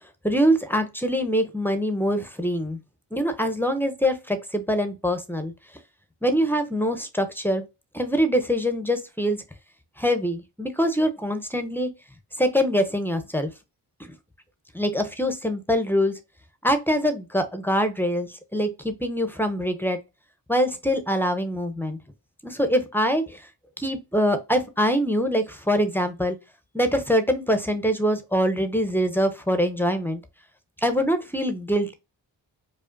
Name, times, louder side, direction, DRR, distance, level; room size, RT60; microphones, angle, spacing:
voice 1, 0.2-2.8 3.1-5.5 6.2-7.7 7.9-9.4 10.0-11.9 12.4-13.5 14.0-14.1 14.7-16.2 16.6-20.0 20.5-22.0 22.4-23.4 23.8-26.4 26.7-30.2 30.8-31.9, equal, 5° left, 0.8 m, -24 dB
4.9 x 2.4 x 2.5 m
cardioid pair, 50°, 46 cm